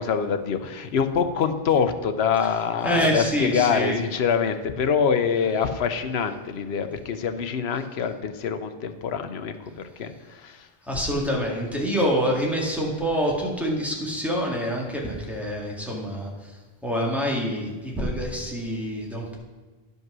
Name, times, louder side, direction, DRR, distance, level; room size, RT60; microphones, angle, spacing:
voice 1, 0.0-10.7, left 6 dB, 90° left, 9 dB, 1.0 m, -25 dB
voice 2, 2.8-4.0 10.8-19.4, equal, ahead, -3 dB, 1.8 m, -26 dB
10.5 x 5.5 x 6.1 m, 1.3 s
omnidirectional pair, 1.0 m